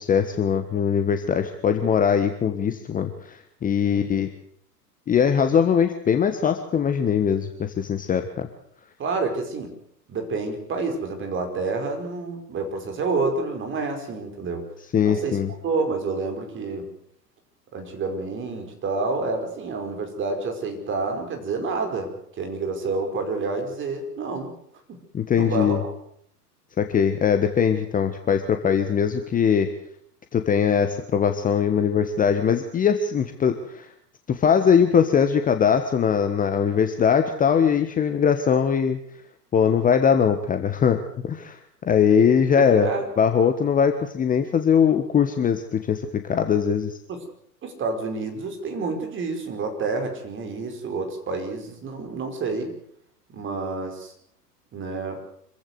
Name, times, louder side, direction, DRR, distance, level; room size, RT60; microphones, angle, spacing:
voice 1, 0.0-4.3 5.1-8.5 14.9-15.5 25.1-25.8 26.8-29.7 30.3-33.9 34.3-39.0 39.5-41.0 41.2-41.6 41.8-42.9 43.2-46.9, left 7 dB, 15° left, 7 dB, 1.5 m, -21 dB
voice 2, 9.0-9.7 10.1-14.6 15.0-16.9 17.7-24.6 24.9-25.0 25.3-25.8 42.5-43.1 46.3-46.4 47.1-47.2 47.6-52.7 53.3-54.1 54.7-55.2, right 3 dB, 25° right, 5 dB, 5.1 m, -29 dB
26.0 x 15.5 x 8.1 m, 0.67 s
figure-of-eight pair, 100°, 49 cm